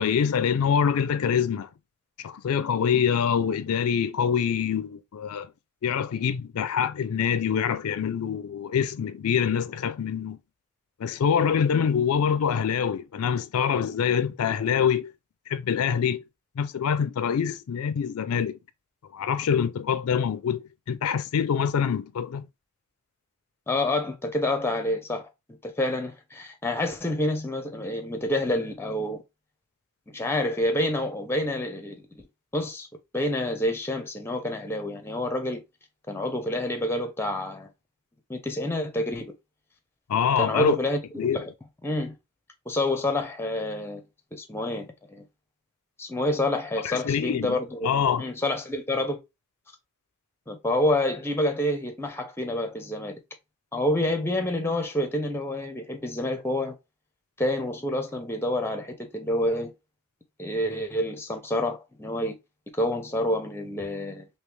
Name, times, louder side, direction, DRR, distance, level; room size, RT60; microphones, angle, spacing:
voice 1, 0.0-1.7 2.2-5.5 5.8-10.4 11.0-15.1 15.5-16.2 16.6-18.6 19.1-22.5 40.1-40.8 41.2-41.4 46.8-47.6 47.8-48.2, left 7 dB, 75° left, 0.4 m, -25 dB
voice 2, 23.7-25.3 25.6-29.2 30.1-32.3 32.5-32.9 33.1-35.6 36.1-37.7 38.3-39.3 40.4-41.5 41.8-42.1 42.7-44.0 44.3-45.3 46.0-47.9 48.2-49.2 50.5-53.2 53.7-56.8 57.4-59.7 60.4-62.3 62.8-64.3, left 1 dB, 10° left, 0.6 m, -28 dB
3.2 x 2.8 x 3.2 m
head